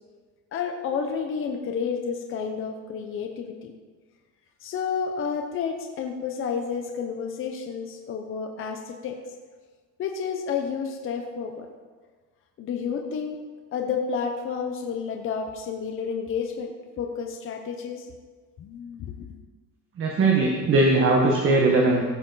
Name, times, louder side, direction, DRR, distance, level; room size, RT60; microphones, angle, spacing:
voice 1, 0.5-3.7 4.6-9.2 10.0-11.7 12.6-13.4 13.7-18.1 18.6-19.4, left 6 dB, 35° left, 3 dB, 0.9 m, -30 dB
voice 2, 20.0-22.0, right 2 dB, 35° right, -1 dB, 1.3 m, -20 dB
16.0 x 6.9 x 4.0 m, 1.4 s
cardioid pair, 165°, 35 cm